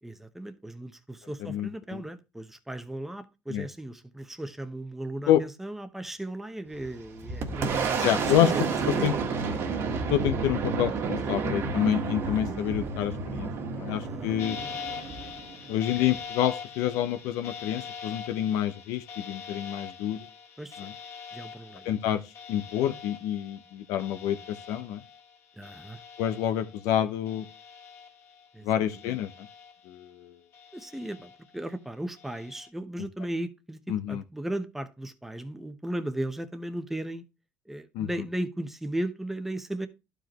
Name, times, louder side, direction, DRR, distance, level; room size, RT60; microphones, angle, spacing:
voice 1, 0.0-9.3 13.9-14.3 16.0-16.1 20.6-20.8 21.3-21.9 25.6-26.0 28.5-28.7 29.0-29.1 30.7-37.2 37.7-39.9, right 1 dB, 5° right, 0.8 m, -36 dB
voice 2, 1.5-2.0 3.5-3.6 5.3-5.4 8.0-8.5 8.9-9.1 10.1-13.5 13.7-14.6 15.7-20.2 20.8-20.9 21.8-22.2 22.5-25.0 26.2-27.4 28.6-29.5 29.9-30.4 33.9-34.2 37.9-38.1, left 11 dB, 85° left, 0.8 m, -28 dB
Boom, 6.7-16.1, right 5 dB, 55° right, 1.6 m, -31 dB
sound 1, 14.4-27.0 27.3-28.5 28.9-30.1 30.5-31.6 32.2-32.7, left 6 dB, 55° left, 1.9 m, -43 dB
11.5 x 5.0 x 3.0 m
cardioid pair, 120°, 5 cm